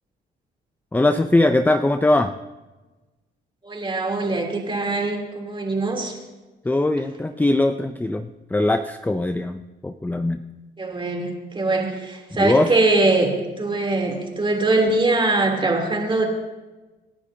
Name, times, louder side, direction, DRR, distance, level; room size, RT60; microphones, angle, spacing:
voice 1, 0.9-2.3 6.6-10.4 12.3-12.7, left 2 dB, 10° left, 9 dB, 0.5 m, -21 dB
voice 2, 3.6-6.2 10.8-13.3 13.6-16.2, right 2 dB, 25° right, 0 dB, 3.2 m, -22 dB
27.0 x 10.5 x 2.8 m, 1.2 s
cardioid pair, 90°, 20 cm